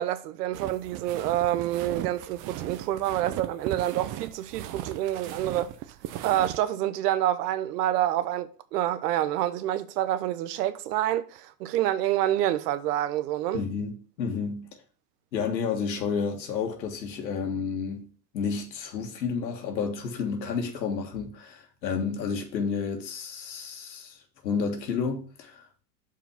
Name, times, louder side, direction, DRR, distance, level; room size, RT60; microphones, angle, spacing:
voice 1, 0.0-5.7 6.2-13.6, right 13 dB, 70° right, 0.9 m, -27 dB
sound 1, 0.5-6.6, right 13 dB, 40° right, 0.7 m, -37 dB
voice 2, 13.5-14.7 15.3-18.1 18.3-24.2 24.4-25.8, left 5 dB, 85° left, 1.7 m, -31 dB
5.8 x 4.8 x 5.8 m
hypercardioid pair, 115°, 50 cm